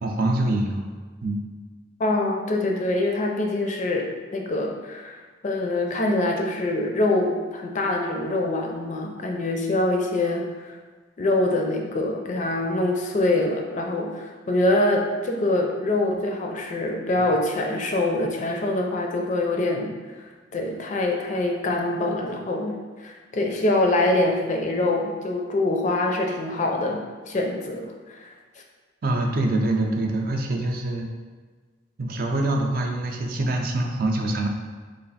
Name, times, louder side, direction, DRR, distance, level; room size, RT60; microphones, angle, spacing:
voice 1, 0.0-0.8 1.2-1.4 29.0-31.1 32.0-34.5, right 2 dB, 55° right, 2 dB, 0.4 m, -24 dB
voice 2, 2.0-4.1 4.3-10.7 11.2-19.9 20.5-22.8 23.0-28.3, left 2 dB, 45° left, 2 dB, 0.4 m, -24 dB
3.1 x 2.4 x 4.0 m, 1.4 s
head